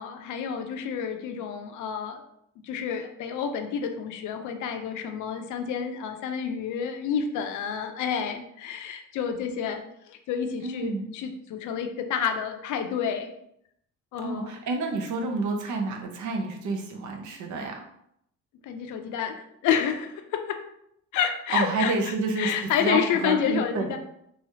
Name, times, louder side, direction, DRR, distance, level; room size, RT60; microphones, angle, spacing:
voice 1, 0.0-2.2 2.6-9.8 10.1-13.3 14.1-14.5 18.6-19.4 19.6-20.6 21.1-24.0, left 7 dB, 80° left, 6 dB, 0.5 m, -29 dB
voice 2, 10.6-11.1 14.2-17.8 21.5-24.0, right 3 dB, 75° right, 3 dB, 0.7 m, -29 dB
3.1 x 2.3 x 2.7 m, 0.75 s
cardioid pair, 90°, 30 cm